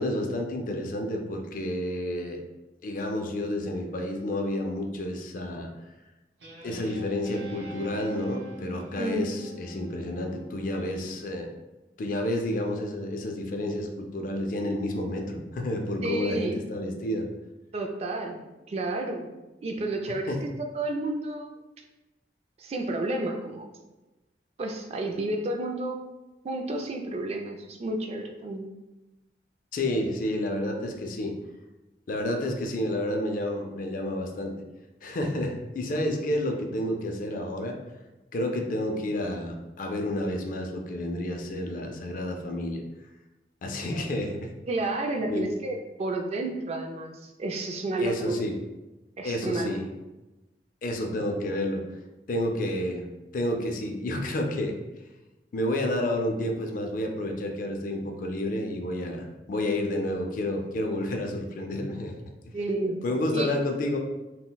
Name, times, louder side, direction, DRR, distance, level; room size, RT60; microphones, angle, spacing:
voice 1, 0.0-2.4 2.8-5.7 6.6-11.5 12.0-17.3 20.3-20.4 29.7-31.3 32.1-34.5 35.0-37.8 38.3-42.8 43.6-44.5 45.3-45.5 48.0-48.5 49.2-49.9 50.8-51.8 52.3-53.0 53.3-54.8 55.5-62.1 63.0-64.0, left 1 dB, 50° left, 3 dB, 0.4 m, -30 dB
Guitar, 6.4-11.1, equal, 80° right, 0.8 m, -42 dB
voice 2, 9.0-9.3 16.0-16.6 17.7-18.4 18.7-19.3 19.6-21.6 22.6-23.7 24.6-26.0 26.4-28.6 44.7-48.4 49.2-49.8 62.5-63.0 63.3-63.5, right 2 dB, 35° right, 3 dB, 0.3 m, -31 dB
3.8 x 2.1 x 2.2 m, 1.1 s
head